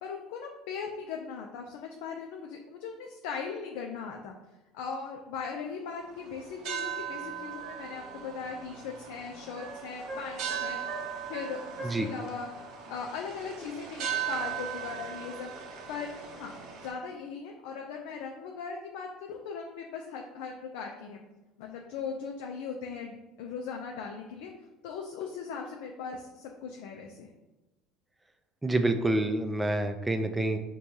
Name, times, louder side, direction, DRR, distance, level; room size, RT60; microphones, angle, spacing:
voice 1, 0.0-4.3 4.7-10.8 11.3-12.5 12.9-15.5 15.9-16.5 16.8-21.2 21.6-24.5 24.8-27.3, left 5 dB, 80° left, 2 dB, 0.4 m, -39 dB
sound 1, 6.0-16.9, right 9 dB, 65° right, 0.6 m, -38 dB
sound 2, 7.6-8.0 9.5-12.1, right 3 dB, 35° right, 0.8 m, -43 dB
voice 2, 28.6-30.6, right 2 dB, 10° right, 7 dB, 0.3 m, -27 dB
4.5 x 2.2 x 2.7 m, 1.1 s
supercardioid pair, 105°, 0 cm